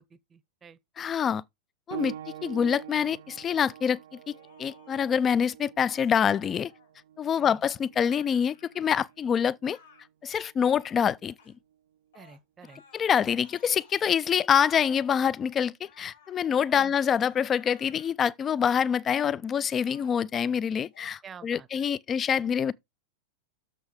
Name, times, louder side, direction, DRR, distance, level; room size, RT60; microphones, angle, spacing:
voice 1, 0.0-0.8 7.3-7.6 12.1-12.8 16.7-16.9 21.2-21.7, right 6 dB, 20° right, 0.7 m, -49 dB
voice 2, 1.0-1.4 1.9-2.1 2.4-4.0 4.3-4.4 4.6-6.7 7.2-9.8 10.2-11.3 12.9-22.7, left 8 dB, 25° left, 0.4 m, -26 dB
sound 1, 1.9-12.1 13.1-13.2 13.9-14.0, right 10 dB, 60° right, 0.6 m, -46 dB
sound 2, 4.2-5.2 5.8-6.9 7.9-9.2 9.6-10.0 10.6-11.0 11.4-11.6 12.1-13.1 13.4-14.2 14.9-15.2 15.8-16.4 17.0-18.1 19.1-19.3 19.8-20.3 20.8-21.2 21.7-21.9, left 6 dB, 60° left, 3.5 m, -58 dB
6.9 x 5.9 x 5.0 m
figure-of-eight pair, 90°, 0 cm